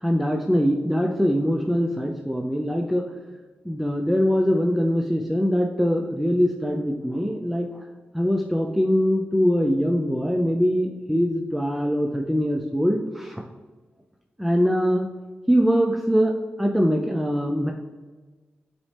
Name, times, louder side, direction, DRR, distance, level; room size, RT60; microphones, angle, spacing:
voice 1, 0.0-3.0 3.6-7.7 8.1-13.4 14.4-15.1 15.5-17.7, equal, 5° right, 2 dB, 0.6 m, -22 dB
6.8 x 4.2 x 3.4 m, 1.3 s
supercardioid pair, 40°, 4 cm